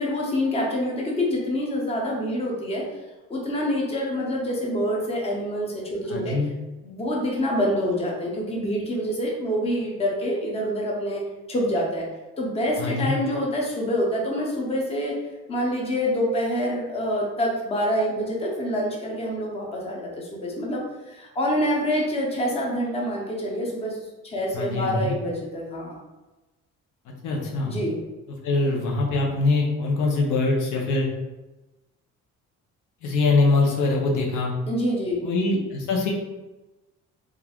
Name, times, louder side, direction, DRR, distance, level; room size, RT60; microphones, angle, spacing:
voice 1, 0.0-2.8 3.3-6.4 6.8-12.1 12.4-15.2 15.5-24.0 24.2-26.0 27.7-28.0 34.7-35.2, equal, 20° left, -2 dB, 0.6 m, -26 dB
voice 2, 6.1-6.5 12.8-13.1 24.5-25.1 27.2-27.7 28.4-31.1 33.0-34.5 35.2-36.1, left 3 dB, 80° left, -1 dB, 0.7 m, -23 dB
3.1 x 2.4 x 2.4 m, 1.1 s
cardioid pair, 140°, 30 cm